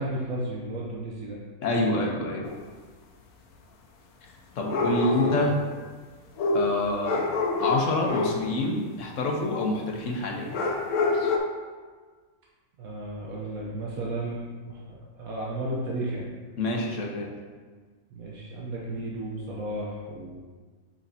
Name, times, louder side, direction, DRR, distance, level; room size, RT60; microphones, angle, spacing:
voice 1, 0.0-1.4 4.8-5.5 12.8-16.3 18.1-20.4, right 1 dB, 75° right, -4 dB, 1.3 m, -34 dB
voice 2, 1.6-2.5 4.6-5.5 6.5-7.2 7.6-10.5 16.6-17.3, left 2 dB, 65° left, 0 dB, 1.2 m, -27 dB
sound 1, 2.4-2.5 4.6-5.6 6.4-8.5 10.5-11.4, left 3 dB, 85° left, 1.2 m, -26 dB
6.5 x 6.2 x 2.8 m, 1.5 s
omnidirectional pair, 1.5 m